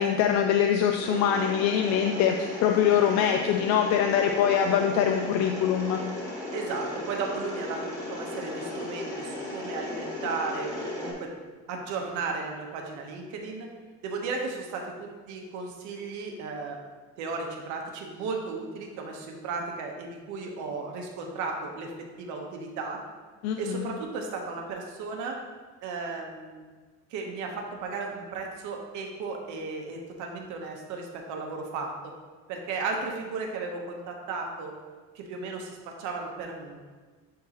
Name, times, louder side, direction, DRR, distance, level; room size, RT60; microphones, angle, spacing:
voice 1, 0.0-6.0 23.4-23.9, left 8 dB, 65° left, 4 dB, 0.4 m, -24 dB
Mechanisms, 1.0-11.1, left 1 dB, 10° left, 1.4 m, -36 dB
voice 2, 6.5-11.3 11.7-13.7 14.0-16.8 17.2-21.9 22.2-23.0 23.6-25.4 25.8-26.6 27.1-32.1 32.5-34.7 35.1-36.8, right 4 dB, 75° right, 1 dB, 1.1 m, -35 dB
10.5 x 3.8 x 3.0 m, 1.4 s
cardioid pair, 180°, 30 cm